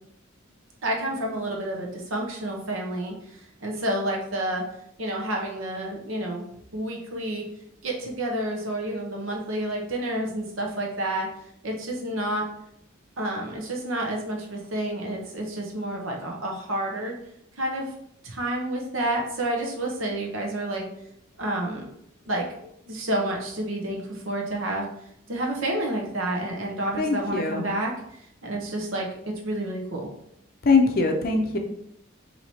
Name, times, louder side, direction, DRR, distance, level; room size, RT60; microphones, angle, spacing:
voice 1, 0.8-4.6 5.0-6.4 6.7-7.5 7.8-11.3 11.6-12.4 13.2-17.2 17.6-17.9 18.2-20.9 21.4-21.9 22.3-24.9 25.3-27.9 28.4-30.1, right 1 dB, 75° right, 0 dB, 0.8 m, -29 dB
voice 2, 27.0-27.6 30.6-31.6, left 4 dB, 45° left, 3 dB, 0.5 m, -22 dB
4.6 x 2.9 x 2.8 m, 0.74 s
head